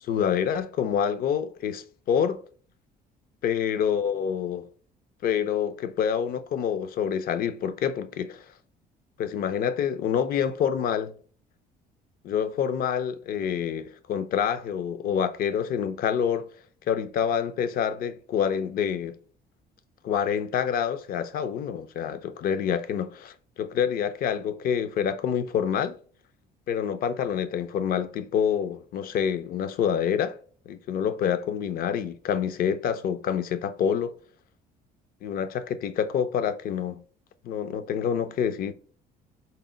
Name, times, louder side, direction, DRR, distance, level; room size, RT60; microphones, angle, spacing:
voice 1, 0.0-2.4 3.4-4.7 5.2-8.5 9.2-11.1 12.2-16.5 16.9-19.2 20.0-26.0 26.7-30.4 30.7-34.1 35.2-37.0 37.4-38.7, left 8 dB, 60° left, 0.5 m, -27 dB
4.0 x 2.0 x 3.8 m
cardioid pair, 110°, 17 cm